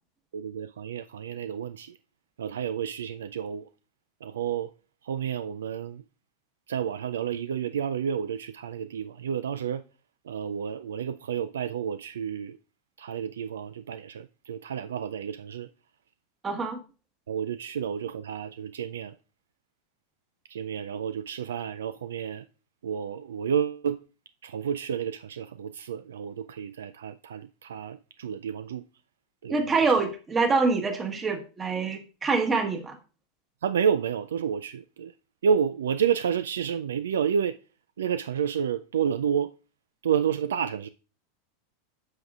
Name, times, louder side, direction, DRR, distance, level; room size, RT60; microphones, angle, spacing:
voice 1, 0.3-2.0 2.4-3.7 4.2-4.7 5.0-6.0 6.7-9.8 10.2-12.6 13.0-15.7 17.3-19.2 20.5-22.4 22.8-24.0 24.4-28.8 29.4-29.7 33.6-35.1 35.4-37.6 38.0-39.5 40.0-40.9, right 7 dB, 80° right, 0.3 m, -30 dB
voice 2, 16.4-16.8 29.5-33.0, right 4 dB, 25° right, 1.3 m, -25 dB
9.4 x 6.2 x 2.4 m
hypercardioid pair, 90°, 0 cm